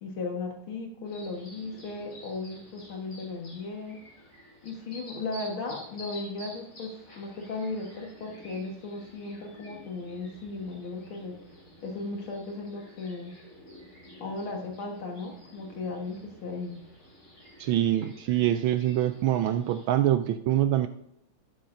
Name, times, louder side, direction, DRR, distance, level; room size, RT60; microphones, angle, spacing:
voice 1, 0.0-4.0 4.6-11.3 11.8-13.3 14.2-16.8, left 3 dB, 75° left, 1 dB, 2.3 m, -36 dB
sound 1, 1.0-19.9, equal, 45° left, 4.9 m, -50 dB
voice 2, 17.6-20.9, right 12 dB, 75° right, 9 dB, 1.3 m, -25 dB
12.0 x 11.0 x 2.6 m, 0.76 s
omnidirectional pair, 2.3 m